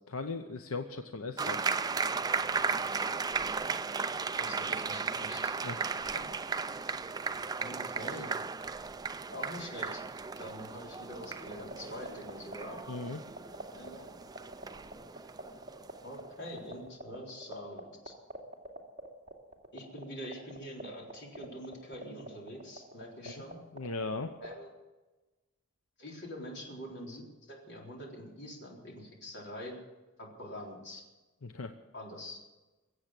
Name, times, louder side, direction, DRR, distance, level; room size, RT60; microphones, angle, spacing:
voice 1, 0.1-1.7 5.6-5.9 12.9-13.2 23.2-23.4 23.7-24.3 31.4-31.7, left 3 dB, 90° left, 6 dB, 0.9 m, -38 dB
sound 1, 1.4-16.3, right 4 dB, 20° right, 0.4 m, -35 dB
voice 2, 4.4-5.5 6.1-6.2 7.6-8.3 9.3-10.0 10.4-12.8 13.7-14.2 16.0-18.1 19.7-23.6 24.4-24.7 26.0-29.8 30.2-31.0 31.9-32.4, equal, 55° left, -1 dB, 4.0 m, -45 dB
sound 2, 11.1-24.5, equal, 35° right, 2.7 m, -42 dB
23.0 x 8.1 x 7.6 m, 1.2 s
head